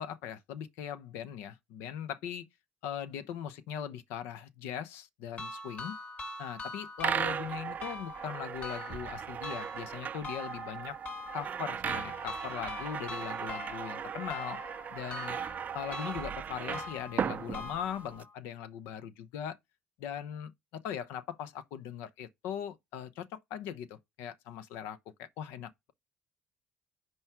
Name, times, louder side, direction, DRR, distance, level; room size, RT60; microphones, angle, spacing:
voice 1, 0.0-2.4 2.8-5.9 6.4-11.0 11.3-14.6 14.9-15.4 15.7-19.6 20.0-20.5 20.8-25.9, left 9 dB, 75° left, 0.7 m, -40 dB
sound 1, 5.4-18.3, left 2 dB, 45° left, 3.1 m, -44 dB
sound 2, 7.0-18.2, right 8 dB, 45° right, 0.4 m, -37 dB
5.5 x 4.7 x 4.5 m
hypercardioid pair, 60°, 4 cm